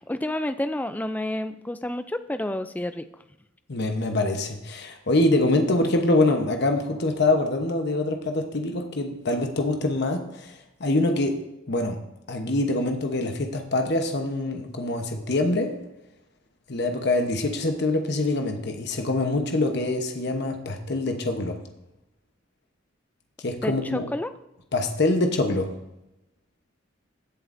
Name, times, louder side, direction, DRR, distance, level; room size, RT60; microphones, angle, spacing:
voice 1, 0.1-3.0 23.6-24.3, left 1 dB, 10° left, 10 dB, 0.3 m, -29 dB
voice 2, 3.7-10.5 10.8-11.4 11.7-12.0 12.3-15.7 16.7-21.6 23.4-24.1 24.7-25.7, left 2 dB, 55° left, 4 dB, 1.0 m, -24 dB
15.5 x 7.5 x 2.6 m, 0.91 s
head